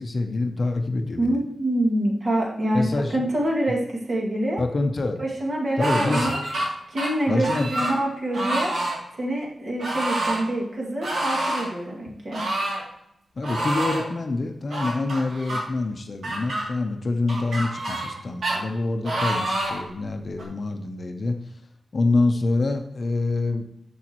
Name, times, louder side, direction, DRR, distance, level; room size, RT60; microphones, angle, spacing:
voice 1, 0.0-1.4 2.7-3.2 4.6-5.2 5.8-6.3 7.3-7.7 13.4-21.4 21.9-23.6, left 2 dB, 40° left, 5 dB, 0.7 m, -26 dB
voice 2, 1.2-3.8 4.1-4.6 5.2-6.4 6.9-8.7 9.2-12.4, right 1 dB, 40° right, -3 dB, 2.2 m, -26 dB
sound 1, 5.8-6.7 7.0-8.0 8.3-9.0 9.8-10.4 11.0-11.7 12.3-12.8 13.4-14.1 14.7-15.6 16.2-16.6 17.3-18.2 18.4-18.6 19.0-19.8 20.4-20.5, right 1 dB, 70° right, 2.6 m, -27 dB
10.5 x 7.1 x 3.0 m, 0.76 s
wide cardioid pair, 170°, 0 cm